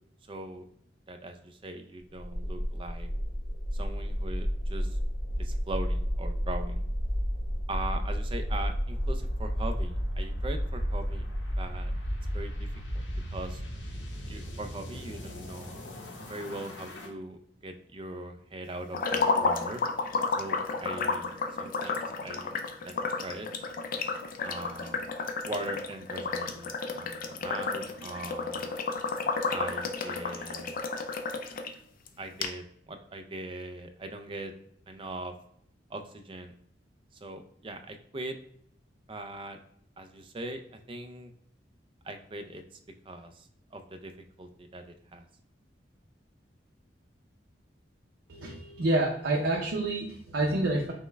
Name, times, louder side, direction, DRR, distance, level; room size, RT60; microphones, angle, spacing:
voice 1, 0.3-0.7 1.1-3.1 3.7-5.0 5.4-6.8 7.7-11.3 11.6-11.9 12.3-12.7 12.9-13.0 13.3-13.6 14.3-15.8 16.2-19.8 20.4-22.5 22.8-22.9 23.2-23.5 24.4-25.0 25.4-28.7 29.5-30.8 32.2-34.5 34.9-35.3 35.9-36.5 37.2-38.4 39.1-39.6 40.0-41.3 42.0-42.6 43.1-44.1 44.4-45.3, right 2 dB, 30° right, 7 dB, 0.4 m, -40 dB
sound 1, 2.1-17.1, equal, 80° left, 0.9 m, -32 dB
sound 2, 18.9-31.7 32.1-32.2 32.4-32.5, left 4 dB, 50° left, 0.4 m, -32 dB
voice 2, 48.3-50.9, right 2 dB, 80° right, -1 dB, 0.6 m, -28 dB
5.4 x 2.1 x 3.3 m, 0.68 s
head